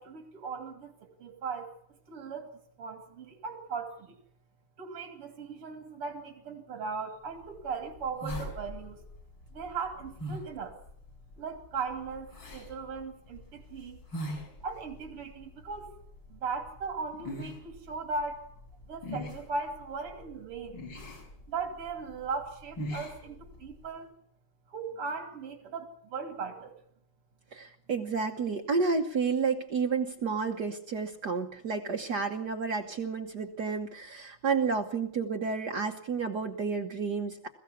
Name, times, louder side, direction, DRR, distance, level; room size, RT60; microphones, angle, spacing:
voice 1, 0.0-1.7 2.1-2.5 2.8-4.1 4.8-9.0 9.5-10.7 11.4-14.0 14.6-15.9 16.3-18.5 18.9-20.8 21.5-24.1 24.7-26.7, right 4 dB, 90° right, 5 dB, 3.4 m, -38 dB
sound 1, 7.3-23.9, equal, 55° left, 5.7 m, -44 dB
voice 2, 27.5-37.5, right 5 dB, 55° right, 3 dB, 1.6 m, -31 dB
21.5 x 15.5 x 8.4 m, 0.70 s
omnidirectional pair, 2.4 m